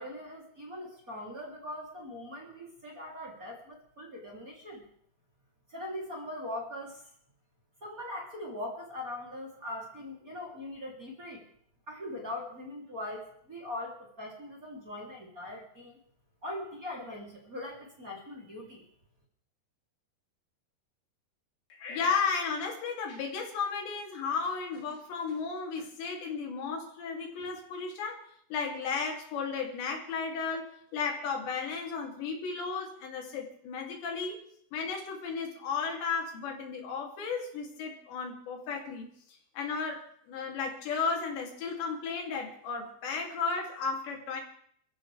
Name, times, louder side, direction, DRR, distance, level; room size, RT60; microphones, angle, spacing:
voice 1, 0.0-4.8 5.7-7.1 7.8-11.4 11.9-15.9 16.4-18.9, left 1 dB, 20° right, -3 dB, 3.2 m, -41 dB
voice 2, 21.7-28.2 28.5-34.4 34.7-39.1 39.6-40.0 40.3-44.4, left 5 dB, 85° left, 1 dB, 5.2 m, -34 dB
28.0 x 14.5 x 3.5 m, 0.65 s
omnidirectional pair, 4.9 m